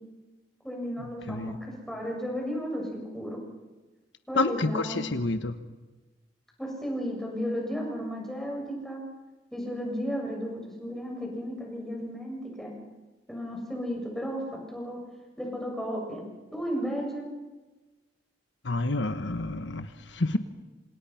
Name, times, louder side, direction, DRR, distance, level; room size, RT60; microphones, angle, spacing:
voice 1, 0.6-3.4 4.3-5.0 6.6-9.0 9.5-12.8 13.3-14.4 14.7-15.0 15.4-16.2 16.5-17.3, equal, ahead, -1 dB, 7.1 m, -34 dB
voice 2, 4.3-5.6 18.6-20.4, left 2 dB, 75° left, 9 dB, 1.3 m, -29 dB
28.0 x 27.0 x 5.9 m, 1.2 s
head